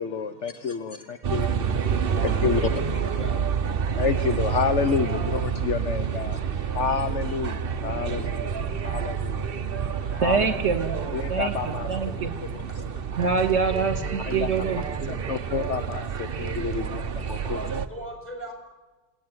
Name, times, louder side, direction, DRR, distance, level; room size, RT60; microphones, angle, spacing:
voice 1, 0.0-1.5 2.2-2.6 4.0-6.4 6.7-8.5 8.8-9.5 10.2-10.5 11.1-11.9 12.2-12.5 14.2-14.5 15.3-17.6, left 6 dB, 50° left, 10 dB, 0.9 m, -29 dB
sound 1, 1.2-17.9, right 7 dB, 65° right, 0.5 m, -28 dB
voice 2, 2.2-3.6 4.9-5.2 5.6-6.2 7.8-8.9 9.7-10.3 10.5-11.9 13.2-13.3 13.7-14.5 14.8-15.2 15.9-16.0 16.5-16.6 17.4-18.5, equal, 5° left, 4 dB, 6.9 m, -41 dB
voice 3, 10.2-12.3 13.2-15.2, right 5 dB, 35° right, 7 dB, 2.9 m, -26 dB
27.5 x 19.0 x 9.6 m, 1.2 s
omnidirectional pair, 2.3 m